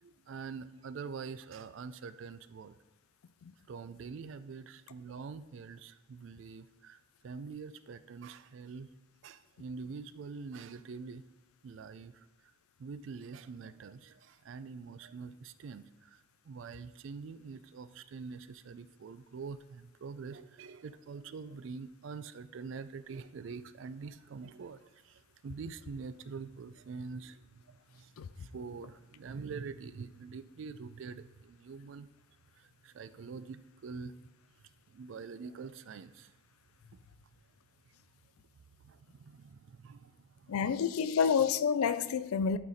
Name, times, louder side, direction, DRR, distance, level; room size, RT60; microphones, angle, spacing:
voice 1, 0.0-2.8 3.7-8.9 9.2-11.2 11.6-12.3 12.8-32.1 32.6-34.2 34.9-36.3 38.8-40.6, right 5 dB, 65° right, 0.3 m, -45 dB
voice 2, 40.5-42.6, left 6 dB, 90° left, 0.4 m, -28 dB
11.5 x 4.1 x 4.0 m
head